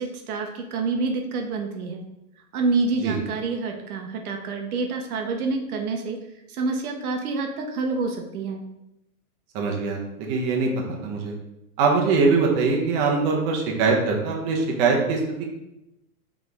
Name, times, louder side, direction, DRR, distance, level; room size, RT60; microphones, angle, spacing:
voice 1, 0.0-2.0 2.5-6.2 6.5-8.6, right 3 dB, 70° right, 3 dB, 0.9 m, -27 dB
voice 2, 9.5-11.3 11.8-15.2, right 4 dB, 35° right, 0 dB, 0.9 m, -22 dB
4.2 x 3.5 x 3.4 m, 0.88 s
hypercardioid pair, 145°, 45 cm